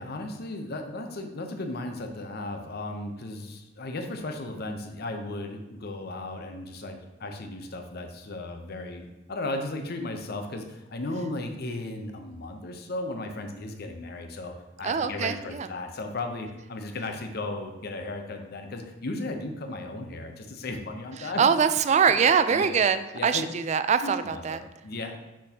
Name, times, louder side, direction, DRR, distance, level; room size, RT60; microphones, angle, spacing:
voice 1, 0.0-21.4 22.5-22.8 23.1-23.5 24.0-25.2, left 2 dB, 55° left, 5 dB, 0.7 m, -35 dB
voice 2, 14.8-15.7 21.2-24.6, right 6 dB, 35° right, 11 dB, 0.3 m, -23 dB
6.2 x 6.1 x 2.8 m, 1.1 s
head